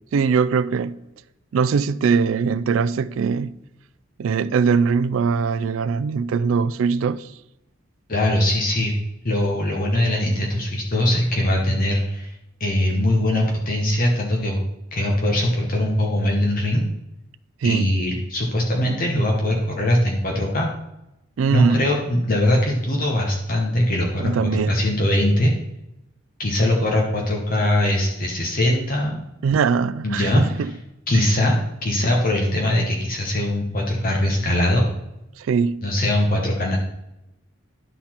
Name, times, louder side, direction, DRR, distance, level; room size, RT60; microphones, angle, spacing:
voice 1, 0.1-1.0 1.5-3.5 4.2-7.3 17.6-17.9 21.4-21.8 24.2-24.7 29.4-30.7 35.4-35.9, right 5 dB, 90° right, 0.3 m, -21 dB
voice 2, 8.1-8.9 9.2-12.3 12.6-14.6 14.9-16.8 17.6-20.7 21.5-25.5 26.4-29.2 30.0-30.7 31.1-34.9 35.8-36.8, left 1 dB, 45° left, 1.0 m, -21 dB
11.5 x 4.1 x 4.3 m
head